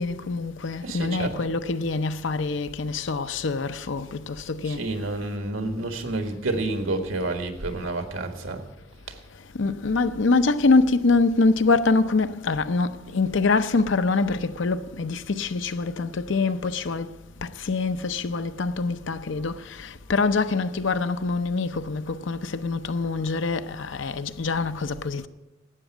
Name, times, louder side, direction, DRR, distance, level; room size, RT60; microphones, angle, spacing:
voice 1, 0.0-4.8 9.5-17.1 17.4-25.3, left 3 dB, 65° left, 0.6 m, -25 dB
voice 2, 0.8-1.4 4.6-8.6 9.1-9.2, right 2 dB, 80° right, 1.7 m, -29 dB
12.0 x 9.0 x 9.0 m
head